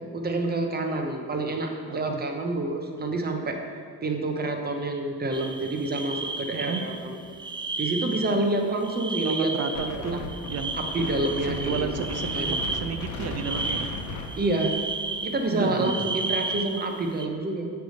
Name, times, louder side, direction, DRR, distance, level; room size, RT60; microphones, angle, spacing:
voice 1, 0.1-3.6 4.0-7.2 7.8-9.5 9.9-10.3 10.7-11.9 12.3-12.6 14.4-14.7 15.2-17.7, right 2 dB, 30° right, 3 dB, 1.0 m, -28 dB
voice 2, 1.9-2.2 6.5-6.8 9.2-10.7 11.5-13.9 15.5-16.1, right 5 dB, 55° right, 8 dB, 0.6 m, -32 dB
sound 1, 5.3-17.2, right 3 dB, 15° right, 0.5 m, -33 dB
Wind, 9.7-15.2, left 3 dB, 70° left, 0.9 m, -36 dB
7.6 x 3.5 x 6.4 m, 2.1 s
cardioid pair, 90°, 30 cm